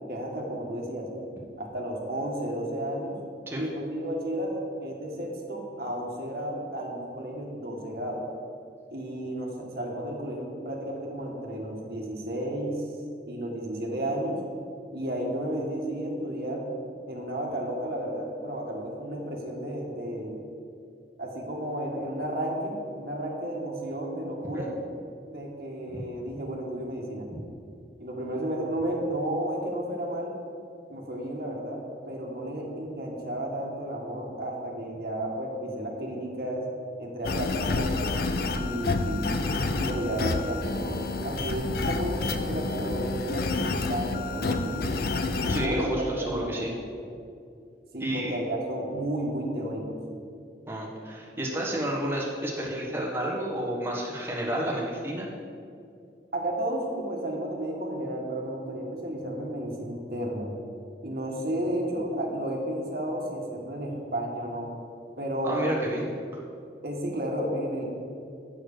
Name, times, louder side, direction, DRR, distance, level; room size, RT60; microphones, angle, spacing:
voice 1, 0.1-1.1 1.6-3.1 3.6-8.2 8.9-12.8 13.3-14.4 14.9-16.7 17.1-20.4 21.2-24.7 25.3-27.3 28.0-30.3 30.9-36.7 37.0-38.0 38.5-39.2 39.8-44.8 45.6-45.9 46.2-46.7 47.9-50.0 56.3-60.5 61.0-64.7 65.2-65.7 66.8-67.8, right 1 dB, 55° right, -1 dB, 1.6 m, -32 dB
sound 1, 37.2-45.7, left 3 dB, 55° left, 0.5 m, -29 dB
voice 2, 45.5-46.7 48.0-48.3 50.7-55.3 65.4-66.0, right 1 dB, 15° right, -3 dB, 1.4 m, -31 dB
7.3 x 6.4 x 6.7 m, 2.4 s
head